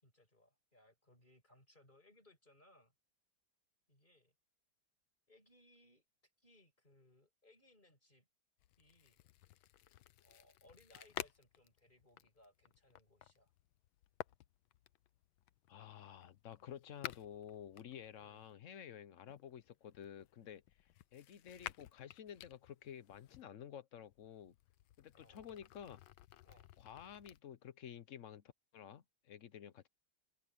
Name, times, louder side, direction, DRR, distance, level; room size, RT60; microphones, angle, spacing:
voice 1, 0.0-2.9 3.9-4.3 5.3-8.3 8.8-9.2 10.2-13.5 18.2-18.4 25.1-25.6 26.4-26.7, left 1 dB, 20° left, 6.6 m, -67 dB
sound 1, 8.6-18.5 19.3-23.4 24.0-27.4, left 13 dB, 80° left, 1.5 m, -53 dB
voice 2, 15.7-20.6 21.1-24.5 25.0-26.0 26.8-28.4 28.7-29.9, left 9 dB, 60° left, 0.8 m, -52 dB
open air
omnidirectional pair, 2.2 m